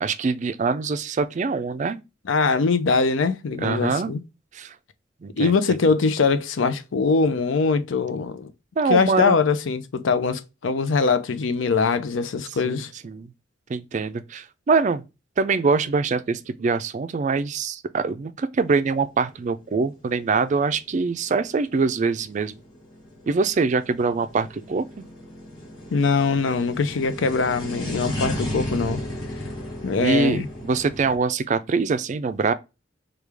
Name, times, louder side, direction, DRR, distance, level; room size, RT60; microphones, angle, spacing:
voice 1, 0.0-2.0 3.6-4.1 4.5-4.7 5.2-5.8 8.8-9.4 12.6-13.3 13.7-15.0 15.4-22.6 23.3-25.0 30.0-32.5, right 4 dB, 40° right, 0.3 m, -24 dB
voice 2, 2.3-4.2 5.4-8.5 8.9-12.9 25.9-29.0 29.8-30.5, left 4 dB, 85° left, 0.5 m, -22 dB
sound 1, 18.7-31.2, equal, 25° left, 1.6 m, -35 dB
4.8 x 2.3 x 3.3 m
head